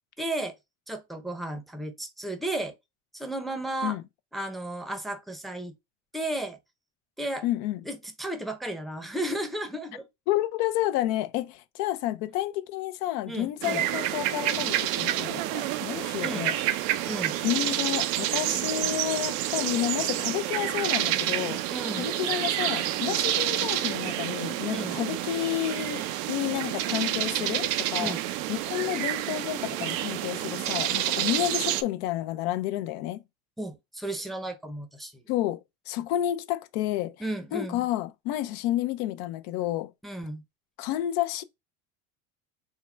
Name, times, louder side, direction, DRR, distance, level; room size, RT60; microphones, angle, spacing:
voice 1, 0.2-0.6 0.9-2.7 3.1-4.0 4.3-5.7 6.1-6.6 7.2-7.4 7.8-10.1 13.3-13.8 16.2-16.5 17.1-17.4 21.7-22.1 24.7-25.0 28.0-28.2 33.6-35.2 37.2-37.9 40.0-40.4, right 1 dB, ahead, 0.6 m, -34 dB
voice 2, 7.4-7.8 10.3-16.5 16.9-17.1 17.4-21.6 22.0-28.2 28.5-33.2 35.3-37.2 37.5-39.9 40.8-41.4, left 14 dB, 75° left, 0.6 m, -30 dB
sound 1, 13.6-31.8, right 13 dB, 85° right, 0.6 m, -29 dB
3.7 x 2.2 x 4.3 m
supercardioid pair, 105°, 39 cm